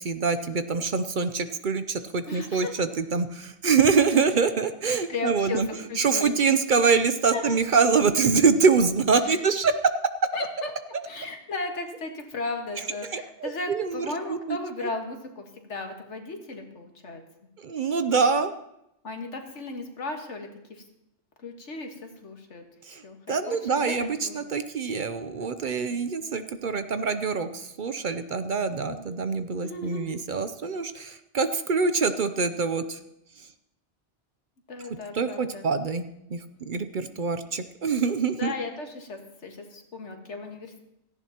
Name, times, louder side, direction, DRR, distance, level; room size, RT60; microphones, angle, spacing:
voice 1, 0.0-5.7 6.0-9.7 13.1-14.6 17.6-18.5 22.9-23.0 23.3-33.0 35.1-36.0 36.3-38.5, right 5 dB, 50° right, 10 dB, 0.7 m, -25 dB
voice 2, 2.3-2.7 4.9-5.6 5.9-6.3 7.2-7.6 9.2-9.3 10.3-10.7 11.1-17.2 19.0-20.8 21.4-22.6 23.0-23.9 24.2-24.4 28.9-29.1 29.6-30.2 34.7-35.6 36.9-37.1 38.3-40.8, left 3 dB, 90° left, 3 dB, 1.9 m, -36 dB
17.0 x 14.5 x 2.9 m, 0.83 s
omnidirectional pair, 1.2 m